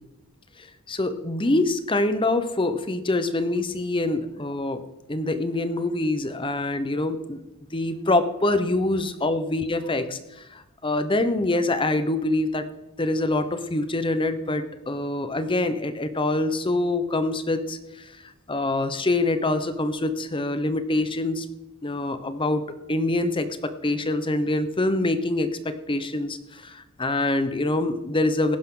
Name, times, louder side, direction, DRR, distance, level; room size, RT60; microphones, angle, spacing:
voice 1, 0.6-4.8 5.1-7.4 7.7-12.6 13.0-18.1 18.5-21.5 21.8-22.6 22.9-28.6, left 2 dB, 25° left, 10 dB, 0.9 m, -25 dB
18.0 x 10.5 x 3.9 m, 0.96 s
head